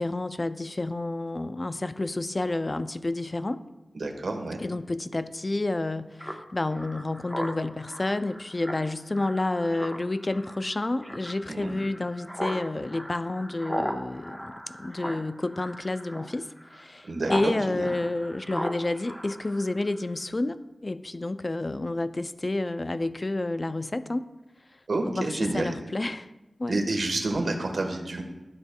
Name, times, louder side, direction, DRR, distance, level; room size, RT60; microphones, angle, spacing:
voice 1, 0.0-3.6 4.6-24.3 25.0-26.3 26.6-26.8, left 2 dB, 40° left, 0.3 m, -30 dB
voice 2, 3.9-4.6 11.5-11.7 17.0-17.9 24.9-25.7 26.7-28.2, right 2 dB, 75° right, 1.1 m, -29 dB
Speech synthesizer, 6.2-17.5 17.8-20.0, equal, 5° left, 0.8 m, -38 dB
13.0 x 6.5 x 2.2 m
wide cardioid pair, 60°, 0 cm